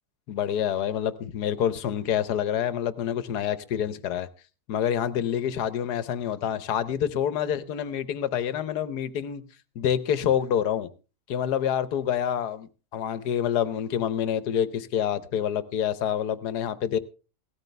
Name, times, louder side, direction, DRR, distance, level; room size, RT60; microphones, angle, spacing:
voice 1, 0.3-4.3 4.7-9.4 9.7-10.9 11.3-17.0, left 9 dB, 85° left, 1.5 m, -27 dB
17.0 x 13.5 x 3.3 m
omnidirectional pair, 1.7 m